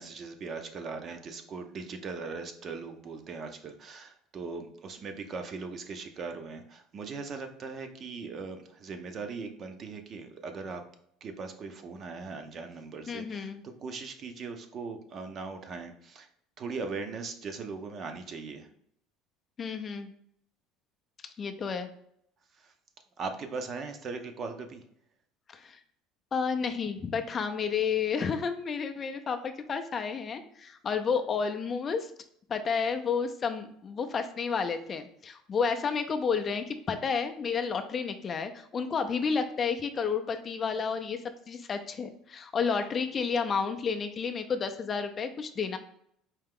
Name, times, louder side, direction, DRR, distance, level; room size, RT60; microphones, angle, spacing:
voice 1, 0.0-10.8 11.2-13.5 13.8-16.3 16.6-18.7 22.5-22.7 23.2-24.8, right 4 dB, 35° right, 6 dB, 0.6 m, -39 dB
voice 2, 13.1-13.6 19.6-20.1 21.4-21.9 25.5-25.8 26.3-32.1 32.5-45.8, left 6 dB, 30° left, 6 dB, 0.4 m, -31 dB
4.4 x 2.8 x 3.6 m, 0.69 s
cardioid pair, 130°, 0 cm